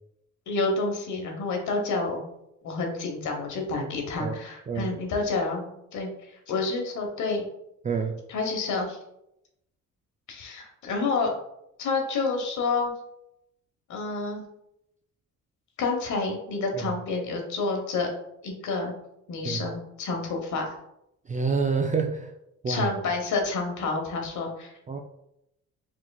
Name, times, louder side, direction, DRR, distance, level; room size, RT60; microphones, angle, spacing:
voice 1, 0.5-2.2 2.6-7.4 8.3-9.0 10.3-11.3 11.8-12.9 13.9-14.4 15.8-18.1 18.4-18.9 19.3-20.7 22.7-24.7, left 3 dB, 75° left, 2 dB, 1.1 m, -29 dB
voice 2, 7.8-8.2 16.7-16.9 19.4-19.7 21.3-22.3 22.6-22.9 24.9-25.0, right 5 dB, 25° right, 4 dB, 0.4 m, -27 dB
4.8 x 3.7 x 2.3 m, 0.82 s
cardioid pair, 90°, 30 cm